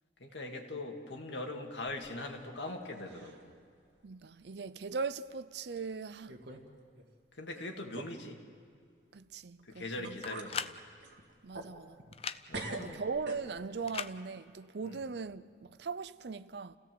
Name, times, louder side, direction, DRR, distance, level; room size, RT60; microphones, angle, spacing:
voice 1, 0.2-3.5 7.4-8.4 9.7-10.7 12.5-13.0 14.8-15.0, left 2 dB, 90° left, 2.4 m, -41 dB
sound 1, 1.9-2.8 3.0-3.5 4.0-4.1 4.9-5.0 5.8-5.9 6.3-6.7 7.0-7.1 9.6-9.7 10.0-10.5 11.0-12.3 12.5-13.8, right 2 dB, 90° right, 2.1 m, -45 dB
voice 2, 4.0-6.4 9.1-10.2 11.4-12.0 12.7-16.8, right 4 dB, 70° right, 0.6 m, -39 dB
sound 2, 10.2-10.8 12.1-12.4 13.9-14.1, left 7 dB, 35° left, 0.5 m, -37 dB
29.5 x 16.5 x 7.8 m
head